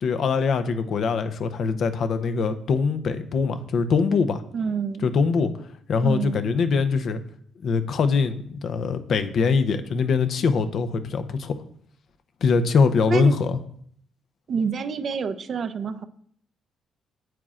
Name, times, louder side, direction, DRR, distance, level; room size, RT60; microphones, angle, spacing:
voice 1, 0.0-4.4 5.0-5.5 5.9-7.2 7.6-11.6 12.4-13.6, left 5 dB, 60° left, 10 dB, 0.6 m, -23 dB
voice 2, 4.5-5.1 6.0-6.4 13.1-13.3 14.5-16.0, right 6 dB, 55° right, 12 dB, 0.5 m, -27 dB
9.1 x 7.5 x 2.4 m, 0.64 s
cardioid pair, 90°, 0 cm